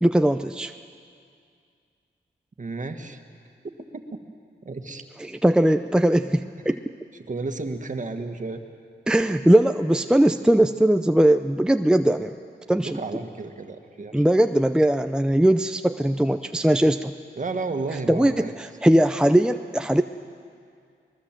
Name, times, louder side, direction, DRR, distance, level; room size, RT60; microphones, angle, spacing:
voice 1, 0.0-0.7 5.3-6.8 9.1-12.3 12.7-13.0 14.1-17.1 18.1-20.0, right 1 dB, 5° right, 8 dB, 0.6 m, -20 dB
voice 2, 2.6-3.2 4.7-5.0 7.3-8.6 12.8-14.3 17.4-18.5, right 3 dB, 40° right, 6 dB, 1.9 m, -32 dB
23.0 x 21.0 x 7.6 m, 2.3 s
cardioid pair, 65°, 19 cm